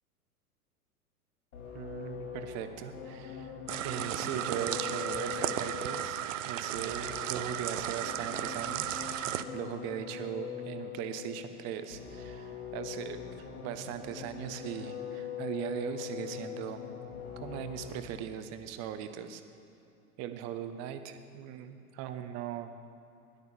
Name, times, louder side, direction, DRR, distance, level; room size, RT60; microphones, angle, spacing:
sound 1, 1.5-18.2, left 8 dB, 65° left, 4.8 m, -42 dB
voice 1, 1.7-3.5 3.8-9.1 9.5-16.8 17.4-19.4 20.2-22.8, right 10 dB, 35° right, 9 dB, 1.2 m, -39 dB
sound 2, 3.7-9.4, right 11 dB, 55° right, 0.7 m, -35 dB
17.0 x 11.5 x 7.1 m, 2.6 s
figure-of-eight pair, 95°, 46 cm